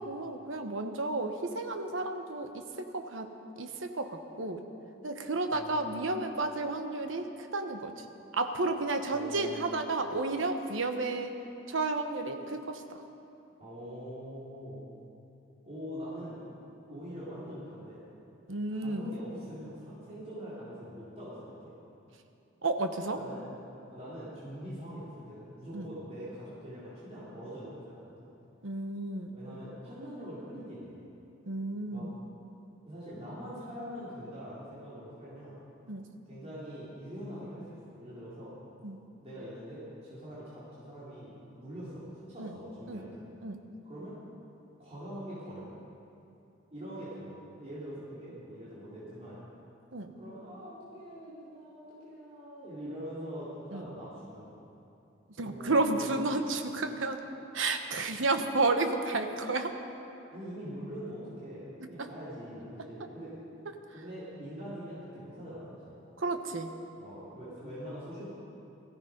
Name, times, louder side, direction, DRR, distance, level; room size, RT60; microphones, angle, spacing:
voice 1, 0.0-4.7 5.0-8.1 8.3-11.4 11.7-12.8 18.5-19.1 22.6-23.2 25.7-25.9 28.6-29.4 31.5-32.2 35.9-36.0 38.8-39.0 42.4-42.6 42.9-43.0 43.4-43.6 49.9-50.1 53.7-53.9 55.4-57.2 57.5-59.7 61.8-62.1 66.2-66.7, right 3 dB, 75° right, 6 dB, 1.1 m, -32 dB
voice 2, 5.5-6.0 9.1-9.7 13.6-14.8 15.6-16.4 16.9-18.1 18.7-21.7 23.2-23.5 23.8-28.3 29.3-31.0 31.9-32.1 32.8-35.6 36.3-38.5 39.2-43.3 43.8-44.1 44.8-45.7 46.7-49.4 50.2-54.6 55.4-56.2 60.3-63.3 63.9-66.0 66.9-68.3, equal, 35° right, -10 dB, 3.7 m, -43 dB
17.5 x 15.0 x 5.2 m, 2.8 s
head